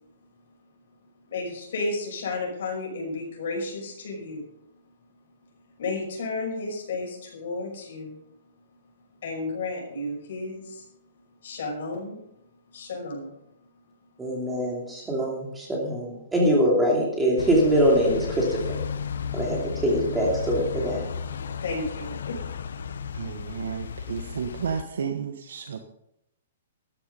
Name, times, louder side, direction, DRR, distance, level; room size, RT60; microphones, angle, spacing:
voice 1, 1.3-4.5 5.8-8.2 9.2-10.8 11.4-12.2 12.7-13.3 21.3-22.4, left 3 dB, 55° left, 0 dB, 5.8 m, -32 dB
voice 2, 14.2-18.4 19.3-21.1, equal, 5° right, -2 dB, 2.8 m, -23 dB
sound 1, 17.4-24.8, left 7 dB, 80° left, 1.1 m, -34 dB
voice 3, 23.1-25.8, right 6 dB, 70° right, 6 dB, 1.2 m, -32 dB
13.5 x 10.0 x 5.4 m, 0.79 s
hypercardioid pair, 180°, 0 cm